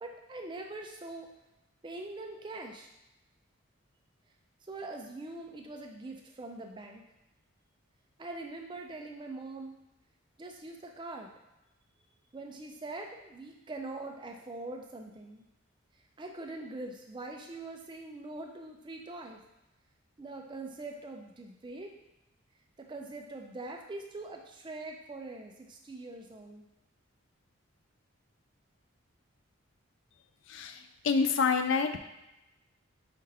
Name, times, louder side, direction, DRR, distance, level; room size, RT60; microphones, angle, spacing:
voice 1, 0.0-1.3 1.8-2.9 4.6-7.0 8.2-9.7 10.4-11.3 12.3-15.4 16.2-19.4 20.2-21.9 22.9-26.6, right 2 dB, 20° right, 2 dB, 0.4 m, -43 dB
voice 2, 30.5-32.0, left 5 dB, 60° left, 8 dB, 0.3 m, -28 dB
5.3 x 2.5 x 4.0 m, 0.95 s
head